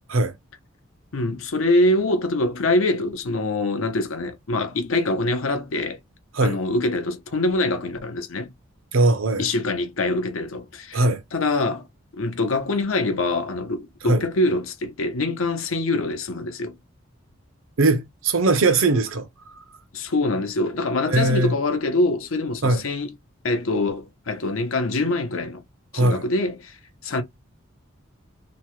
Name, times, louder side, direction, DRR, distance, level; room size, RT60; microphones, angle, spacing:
voice 1, 1.1-6.0 6.4-8.5 9.4-11.0 11.3-11.9 12.1-16.8 19.9-23.1 23.4-25.6 25.9-26.8 27.0-27.2, left 2 dB, 75° left, 0.7 m, -24 dB
voice 2, 8.9-9.5 10.9-11.2 14.1-14.2 17.8-19.3 21.1-21.5 22.6-22.8 25.9-26.2, right 2 dB, 70° right, 0.7 m, -20 dB
2.9 x 2.2 x 3.0 m
head